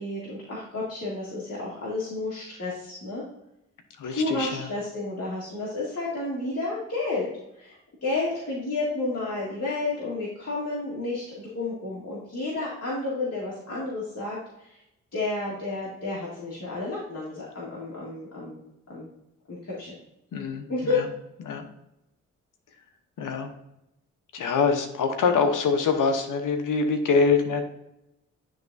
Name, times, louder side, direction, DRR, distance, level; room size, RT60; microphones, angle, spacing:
voice 1, 0.0-3.2 4.0-14.8 15.1-18.6 18.9-19.1 19.5-19.9 20.7-21.0, left 3 dB, 55° left, -7 dB, 2.1 m, -31 dB
voice 2, 4.0-4.7 20.3-20.6 20.9-21.0 21.4-21.7 23.2-23.5 24.3-27.6, left 5 dB, 80° left, 6 dB, 1.0 m, -24 dB
10.0 x 3.6 x 2.7 m, 0.85 s
cardioid pair, 50°, 31 cm